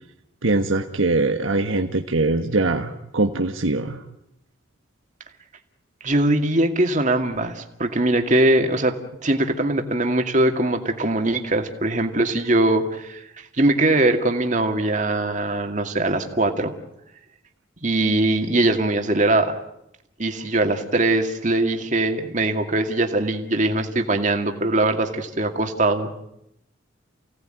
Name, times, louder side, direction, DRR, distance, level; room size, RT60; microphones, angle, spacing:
voice 1, 0.4-4.0, right 2 dB, 85° right, 4 dB, 1.4 m, -22 dB
voice 2, 6.0-9.0 9.2-13.2 13.6-16.7 17.8-19.5 20.2-26.1, right 2 dB, 40° right, 5 dB, 2.2 m, -21 dB
29.0 x 18.0 x 9.1 m, 0.83 s
head